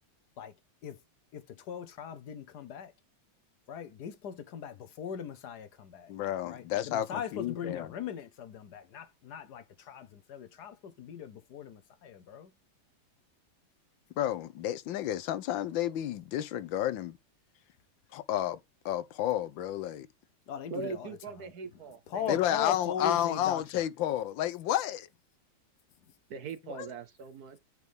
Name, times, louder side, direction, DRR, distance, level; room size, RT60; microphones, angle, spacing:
voice 1, 1.3-2.9 3.7-6.1 6.4-12.5 20.5-21.5 22.1-23.6 26.0-26.1, left 8 dB, 65° left, 1.3 m, -39 dB
voice 2, 6.1-7.9 14.2-17.2 18.1-18.6 18.8-20.1 22.3-25.1 26.7-26.9, left 12 dB, 80° left, 1.4 m, -31 dB
voice 3, 20.7-22.4 26.3-27.6, right 5 dB, 60° right, 1.1 m, -41 dB
9.4 x 4.8 x 3.4 m
omnidirectional pair, 2.1 m